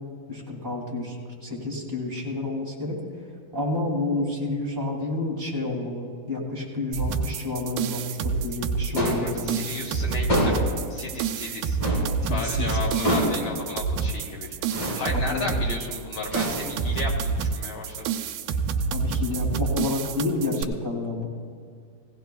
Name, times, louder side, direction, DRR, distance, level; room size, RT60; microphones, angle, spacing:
voice 1, 0.3-3.0 3.5-9.9 12.2-12.8 15.1-15.5 18.9-21.2, left 2 dB, 5° right, -6 dB, 2.6 m, -30 dB
sound 1, 6.9-20.6, right 5 dB, 85° right, 2.4 m, -28 dB
voice 2, 9.0-11.8 12.3-14.5 14.9-18.1, left 3 dB, 60° left, -2 dB, 1.3 m, -34 dB
sound 2, 9.0-9.3 10.3-10.8 11.8-12.1 13.0-13.5 14.7-15.1 16.3-16.9, equal, 35° left, 4.6 m, -25 dB
18.5 x 16.5 x 2.3 m, 2.2 s
omnidirectional pair, 4.0 m